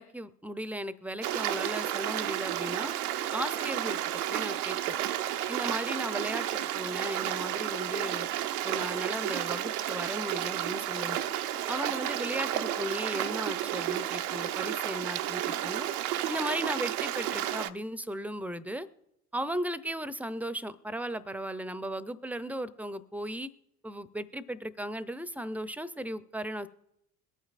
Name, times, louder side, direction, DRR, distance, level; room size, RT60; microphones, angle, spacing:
voice 1, 0.0-2.9 3.3-4.0 4.3-5.0 5.5-8.3 8.6-11.2 11.7-15.9 16.3-18.9 19.3-23.5 23.8-26.7, right 1 dB, 5° right, 15 dB, 0.6 m, -36 dB
Stream, 1.2-17.7, right 12 dB, 75° right, 0.7 m, -32 dB
22.0 x 9.1 x 2.5 m, 0.84 s
figure-of-eight pair, 60°, 45 cm